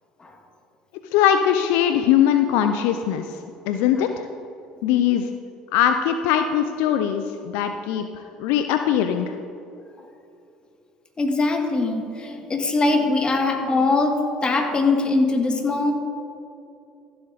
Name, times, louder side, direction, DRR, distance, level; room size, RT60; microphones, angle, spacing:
voice 1, 1.1-3.4 3.7-4.1 4.8-5.3 5.7-9.3, left 9 dB, 70° left, 7 dB, 0.5 m, -21 dB
voice 2, 11.2-15.9, left 3 dB, 25° left, 3 dB, 1.8 m, -22 dB
14.5 x 7.8 x 4.0 m, 2.7 s
hypercardioid pair, 70°, 3 cm